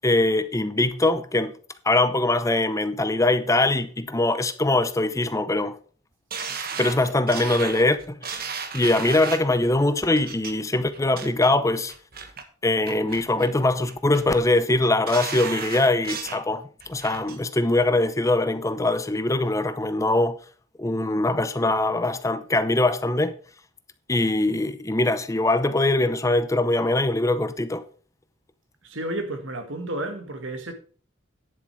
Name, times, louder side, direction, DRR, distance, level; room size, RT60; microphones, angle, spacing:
voice 1, 0.0-1.5 1.8-5.8 6.8-8.4 8.7-11.9 12.6-16.6 16.9-20.4 20.8-23.3 24.1-27.8, left 2 dB, 15° left, 0.6 m, -22 dB
sound 1, 6.3-9.5 10.1-10.5 10.9-11.5 11.9-12.4 12.8-13.5 13.9-14.4 14.8-16.4 16.8-17.4 17.8-17.9, right 5 dB, 50° right, 1.3 m, -34 dB
voice 2, 28.8-30.7, right 1 dB, 70° right, 1.8 m, -31 dB
10.0 x 7.3 x 4.8 m
head